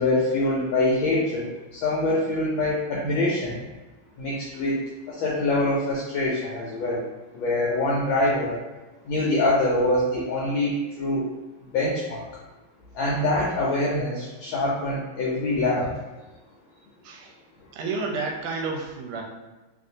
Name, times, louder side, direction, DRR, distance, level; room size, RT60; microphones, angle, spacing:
voice 1, 0.0-3.6 4.2-7.0 7.3-8.6 9.1-11.3 11.7-12.3 12.9-15.9, left 2 dB, 75° left, -5 dB, 1.3 m, -24 dB
voice 2, 17.0-17.4 17.7-19.2, right 4 dB, 85° right, 1 dB, 1.5 m, -31 dB
3.3 x 2.6 x 2.6 m, 1.2 s
omnidirectional pair, 2.3 m